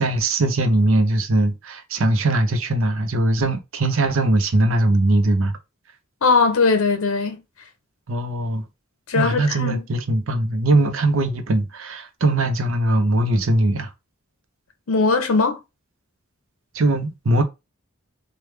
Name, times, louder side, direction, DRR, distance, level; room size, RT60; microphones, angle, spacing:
voice 1, 0.0-5.5 8.1-8.6 9.1-13.9 16.7-17.4, right 2 dB, 75° right, 0.6 m, -20 dB
voice 2, 6.2-7.4 9.1-9.8 14.9-15.6, left 4 dB, 80° left, 0.7 m, -19 dB
3.2 x 2.2 x 3.2 m
head